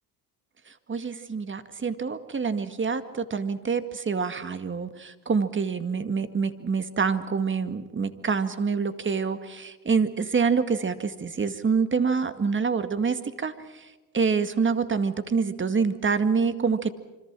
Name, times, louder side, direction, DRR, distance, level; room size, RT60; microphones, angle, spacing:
voice 1, 0.7-16.9, right 5 dB, 30° right, 11 dB, 2.0 m, -26 dB
26.5 x 25.5 x 6.2 m, 1.2 s
supercardioid pair, 90°, 40 cm